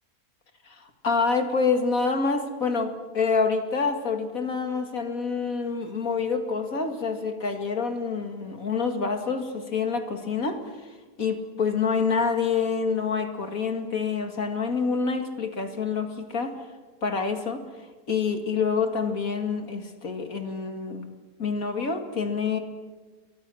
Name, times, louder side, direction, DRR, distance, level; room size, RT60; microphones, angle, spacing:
voice 1, 0.6-16.6 17.0-21.1 21.4-22.6, left 5 dB, 60° left, 6 dB, 2.5 m, -27 dB
30.0 x 23.5 x 6.4 m, 1.3 s
omnidirectional pair, 1.7 m